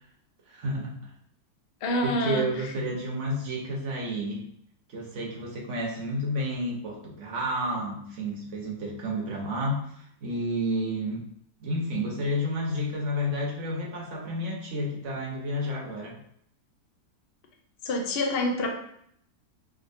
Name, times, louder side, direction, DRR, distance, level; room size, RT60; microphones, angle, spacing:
voice 1, 0.5-1.0 2.0-4.5 4.9-11.3 11.6-16.2, equal, 55° right, -2 dB, 1.0 m, -31 dB
voice 2, 1.8-2.7 17.8-18.7, left 1 dB, 85° left, 2 dB, 0.5 m, -27 dB
3.5 x 2.7 x 2.6 m, 0.68 s
omnidirectional pair, 1.8 m